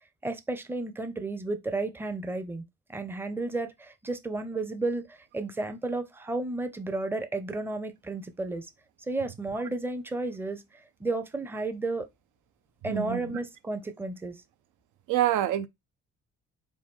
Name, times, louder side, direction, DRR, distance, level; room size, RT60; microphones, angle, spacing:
voice 1, 0.2-2.6 2.9-8.7 9.1-12.1 12.8-14.4, right 2 dB, 5° right, 0.5 m, -32 dB
voice 2, 12.9-13.2 15.1-15.7, right 13 dB, 80° right, 0.5 m, -26 dB
4.1 x 2.3 x 3.5 m
cardioid pair, 90°, 30 cm